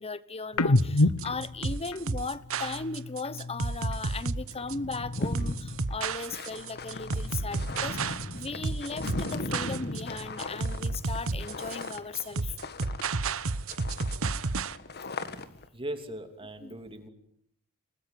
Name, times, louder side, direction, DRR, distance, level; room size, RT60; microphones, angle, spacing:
voice 1, 0.0-12.6 16.6-16.8, left 4 dB, 25° left, 1.1 m, -37 dB
sound 1, 0.5-4.1 4.4-6.3 6.5-8.4 8.7-10.6, left 2 dB, 80° left, 1.1 m, -32 dB
sound 2, 0.8-14.8, right 3 dB, 65° right, 1.1 m, -32 dB
sound 3, 4.2-4.3 4.5-13.4 13.7-15.7, left 2 dB, 50° left, 1.9 m, -38 dB
voice 2, 15.7-17.1, right 1 dB, 25° right, 3.0 m, -39 dB
29.5 x 19.5 x 9.3 m
head